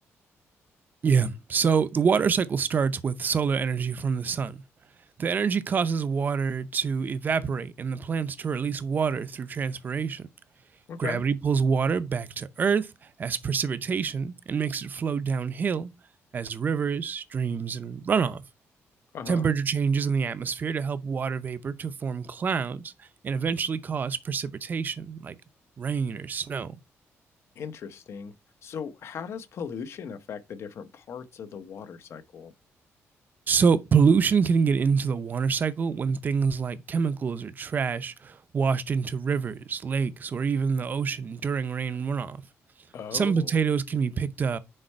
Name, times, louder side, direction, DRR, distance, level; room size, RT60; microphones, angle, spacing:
voice 1, 1.0-4.6 5.2-10.3 11.0-12.9 13.2-15.9 16.3-18.4 19.3-22.9 23.2-25.4 25.8-26.7 33.5-42.4 43.1-44.6, right 6 dB, 35° right, 0.6 m, -26 dB
voice 2, 10.9-11.2 19.1-19.5 27.6-28.3 28.6-32.5 42.9-43.6, left 7 dB, 55° left, 0.8 m, -38 dB
6.5 x 4.4 x 4.4 m
cardioid pair, 150°, 5 cm